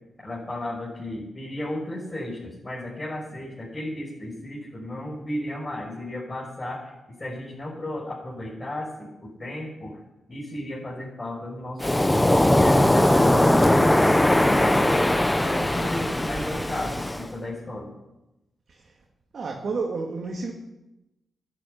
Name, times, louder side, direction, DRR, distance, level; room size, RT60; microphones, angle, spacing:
voice 1, 0.2-6.9 7.2-10.0 10.3-13.9 14.4-15.1 15.4-17.9, left 1 dB, 30° left, -5 dB, 6.2 m, -34 dB
Waves surf, 11.8-17.3, left 1 dB, 15° left, 1.4 m, -20 dB
voice 2, 19.3-20.5, right 4 dB, 60° right, 0 dB, 2.3 m, -30 dB
12.5 x 11.0 x 9.8 m, 0.97 s
supercardioid pair, 45°, 0 cm